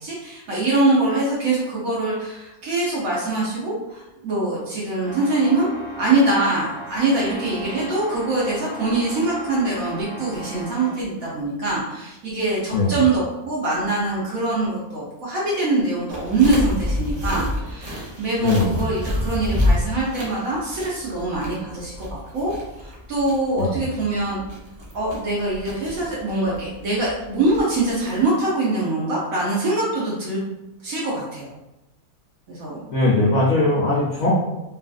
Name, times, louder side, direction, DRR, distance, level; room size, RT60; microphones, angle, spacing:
voice 1, 0.0-5.7 6.0-22.1 22.3-22.5 22.8-24.4 24.9-30.4 30.8-31.5 32.5-32.8, right 2 dB, 70° right, -6 dB, 1.2 m, -23 dB
sound 1, 5.0-11.1, equal, 20° left, 1.4 m, -37 dB
sound 2, 16.1-28.3, left 1 dB, 40° right, 0.5 m, -29 dB
voice 2, 18.4-18.9 23.6-23.8 32.9-34.3, left 2 dB, 70° left, -7 dB, 1.1 m, -20 dB
3.1 x 2.3 x 2.4 m, 0.97 s
omnidirectional pair, 1.5 m